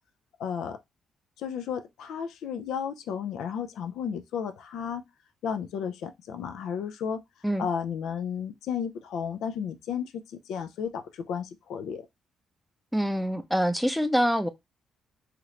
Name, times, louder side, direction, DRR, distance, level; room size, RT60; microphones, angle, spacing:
voice 1, 0.4-0.8 1.4-5.0 5.4-7.2 7.6-12.1, left 7 dB, 80° left, 0.4 m, -33 dB
voice 2, 12.9-14.5, equal, ahead, 0.5 m, -25 dB
2.9 x 2.4 x 3.1 m
cardioid pair, 90°, 0 cm